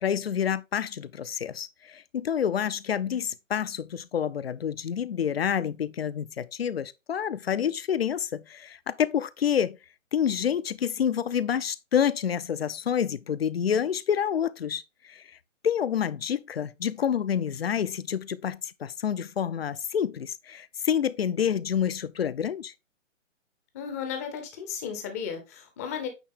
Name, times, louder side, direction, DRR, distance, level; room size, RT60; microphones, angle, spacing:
voice 1, 0.0-9.8 10.1-15.2 15.6-22.7, left 8 dB, 50° left, 0.5 m, -28 dB
voice 2, 23.7-26.1, left 7 dB, 10° left, 0.7 m, -34 dB
8.8 x 3.1 x 3.6 m
figure-of-eight pair, 135°, 39 cm